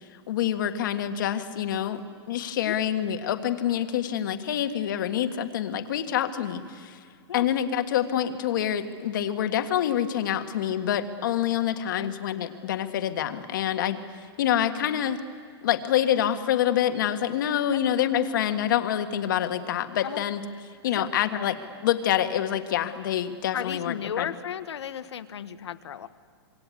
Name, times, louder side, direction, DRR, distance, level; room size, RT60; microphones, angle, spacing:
voice 1, 0.3-2.0 2.3-7.0 7.3-14.0 14.4-15.2 15.6-20.4 20.8-21.6 21.8-24.3, left 10 dB, 50° left, 7 dB, 1.6 m, -26 dB
voice 2, 23.5-26.1, left 8 dB, 80° left, 10 dB, 1.4 m, -34 dB
26.5 x 23.0 x 8.4 m, 2.1 s
hypercardioid pair, 175°, 14 cm